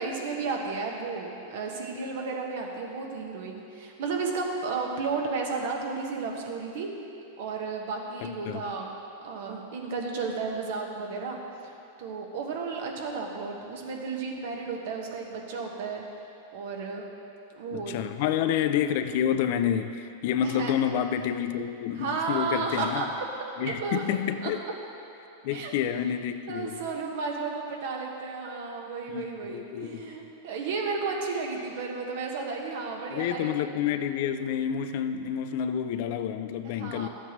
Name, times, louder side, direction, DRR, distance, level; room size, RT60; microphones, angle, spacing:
voice 1, 0.0-6.9 7.4-8.9 9.2-11.4 12.0-16.0 16.5-17.1 17.5-17.9 20.4-20.7 22.0-23.0 23.6-24.0 24.4-24.5 25.5-25.7 26.5-33.5 36.6-37.1, right 4 dB, 70° right, 1 dB, 1.3 m, -33 dB
voice 2, 17.7-23.0 23.6-24.6 25.4-26.8 29.1-30.1 33.1-37.1, left 9 dB, 60° left, 9 dB, 0.4 m, -29 dB
12.5 x 8.0 x 3.1 m, 2.7 s
hypercardioid pair, 125°, 0 cm